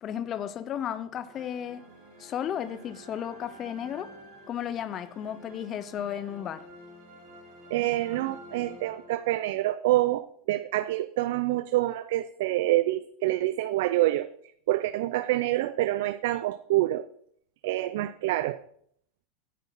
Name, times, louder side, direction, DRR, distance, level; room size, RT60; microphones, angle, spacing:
voice 1, 0.0-1.9 2.2-4.1 4.5-6.7, left 9 dB, 30° left, 0.5 m, -34 dB
sound 1, 1.2-9.6, equal, 45° right, 3.4 m, -50 dB
voice 2, 7.7-14.3 14.7-17.1 17.6-18.6, right 16 dB, 70° right, 0.4 m, -27 dB
9.2 x 5.9 x 5.9 m
supercardioid pair, 150°, 0 cm